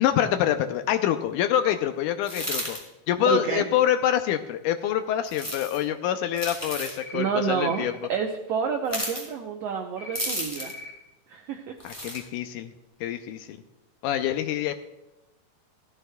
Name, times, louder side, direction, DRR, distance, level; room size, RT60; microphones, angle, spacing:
voice 1, 0.0-2.8 3.1-7.9 11.8-12.7 13.0-13.6 14.0-14.7, left 10 dB, 80° left, 8 dB, 1.9 m, -26 dB
sound 1, 2.2-2.8 5.3-5.8 6.3-7.0 8.9-9.3 10.2-10.8 11.8-12.2, equal, 5° left, 2.7 m, -32 dB
voice 2, 3.2-3.6 7.1-10.7 11.3-11.8, right 6 dB, 90° right, 4 dB, 1.4 m, -28 dB
sound 2, 7.0-7.3 7.6-7.9 10.0-10.3 10.6-10.9, left 3 dB, 25° left, 3.7 m, -41 dB
16.5 x 12.5 x 2.2 m, 0.99 s
omnidirectional pair, 3.9 m